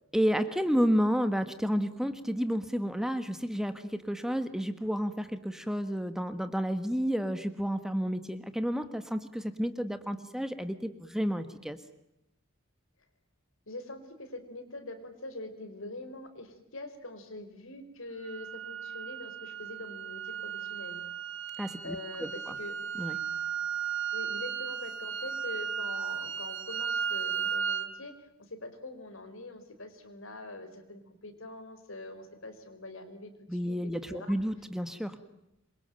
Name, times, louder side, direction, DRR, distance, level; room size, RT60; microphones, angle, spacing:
voice 1, 0.1-11.8 21.6-22.5 23.0-23.2 33.5-35.2, equal, ahead, 9 dB, 1.4 m, -31 dB
voice 2, 13.7-21.0 21.8-22.7 24.1-33.8 34.1-34.4, left 2 dB, 75° left, 9 dB, 4.8 m, -44 dB
sound 1, 18.2-27.9, right 7 dB, 60° right, 2.6 m, -35 dB
27.0 x 24.0 x 9.1 m, 0.85 s
head